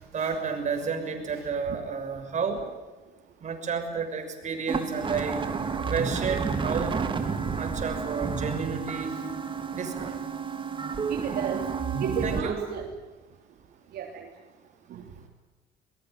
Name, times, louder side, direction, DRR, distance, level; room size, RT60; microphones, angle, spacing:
voice 1, 0.1-2.6 3.4-5.5 5.9-7.0 7.5-9.1 9.7-10.2 12.2-12.6, right 5 dB, 45° right, 5 dB, 6.4 m, -31 dB
sound 1, 4.7-12.4, right 5 dB, 30° right, 3.2 m, -30 dB
voice 2, 11.1-11.6 12.0-12.9 13.9-14.3 14.9-15.0, right 7 dB, 65° right, 1 dB, 3.5 m, -32 dB
23.0 x 22.0 x 9.5 m, 1.2 s
cardioid pair, 110°, 17 cm